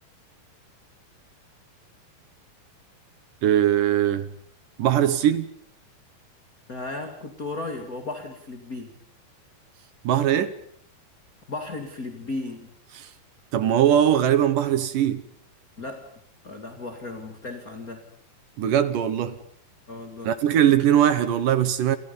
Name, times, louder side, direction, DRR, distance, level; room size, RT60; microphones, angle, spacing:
voice 1, 3.4-4.3 4.8-5.5 10.0-10.5 13.0-13.1 13.5-15.2 18.6-19.4 20.2-22.0, right 10 dB, 65° right, 2.5 m, -21 dB
voice 2, 6.7-8.9 11.5-12.7 15.8-16.0 16.4-18.0 19.9-20.3, left 2 dB, 25° left, 2.3 m, -35 dB
29.0 x 28.0 x 5.5 m
omnidirectional pair, 4.4 m